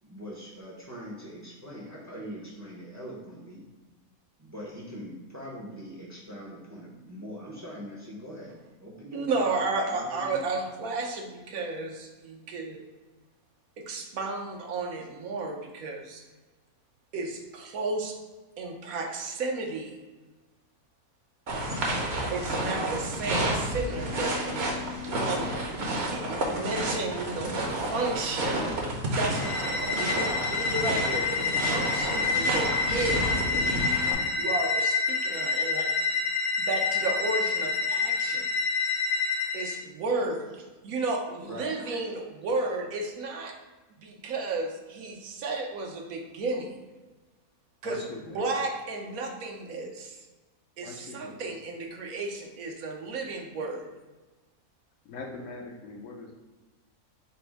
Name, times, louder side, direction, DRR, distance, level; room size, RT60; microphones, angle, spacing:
voice 1, 0.0-3.6 4.4-10.4 41.4-41.8, equal, 25° right, -4 dB, 0.4 m, -42 dB
voice 2, 9.1-12.8 13.8-16.2 17.1-18.1 18.6-20.0 22.3-25.6 26.1-28.6 29.1-35.9 36.6-38.5 39.5-43.5 44.0-46.7 47.8-48.0 48.3-50.2 50.8-53.9, right 3 dB, 80° right, 2 dB, 1.1 m, -33 dB
sound 1, 21.5-34.1, right 1 dB, 55° right, 0.9 m, -30 dB
sound 2, 29.3-39.8, left 4 dB, 90° left, 1.2 m, -28 dB
voice 3, 47.8-48.4 50.8-51.4 55.0-56.3, left 3 dB, 70° left, 1 dB, 0.9 m, -41 dB
4.2 x 2.1 x 4.5 m, 1.2 s
omnidirectional pair, 1.5 m